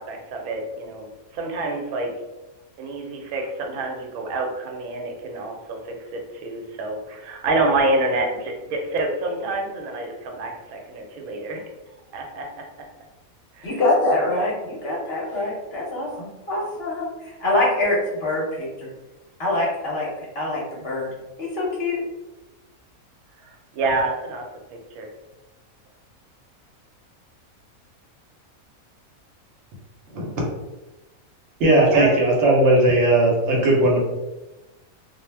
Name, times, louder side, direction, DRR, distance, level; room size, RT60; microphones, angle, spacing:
voice 1, 0.0-2.1 2.8-12.6 13.5-13.8 23.4-24.5 24.7-25.1 31.9-32.1, right 2 dB, 85° right, 1 dB, 1.1 m, -27 dB
voice 2, 13.6-18.9 19.4-20.1 20.4-21.1 21.4-22.0, left 2 dB, 55° left, -4 dB, 0.8 m, -24 dB
voice 3, 31.6-34.0, right 1 dB, 60° right, -2 dB, 0.9 m, -17 dB
2.3 x 2.0 x 3.1 m, 1.1 s
omnidirectional pair, 1.5 m